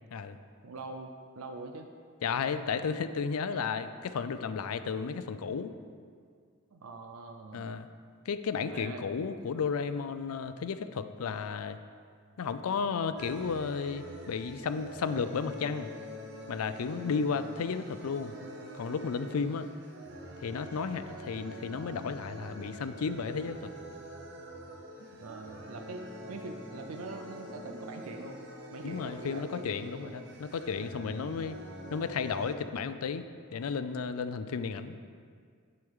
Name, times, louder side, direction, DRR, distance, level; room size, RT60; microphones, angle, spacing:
voice 1, 0.6-1.9 6.7-7.7 8.6-9.1 17.0-17.2 25.0-28.4 28.7-29.7, right 3 dB, 80° right, 5 dB, 0.5 m, -43 dB
voice 2, 2.2-5.7 7.5-7.9 8.3-11.8 12.4-15.9 16.5-18.3 18.7-19.7 20.4-23.7 28.8-31.6 31.9-33.2 33.5-35.0, left 5 dB, 90° left, 11 dB, 0.4 m, -33 dB
sound 1, 13.2-32.6, equal, 50° right, 0.8 m, -45 dB
8.1 x 7.7 x 3.7 m, 2.1 s
head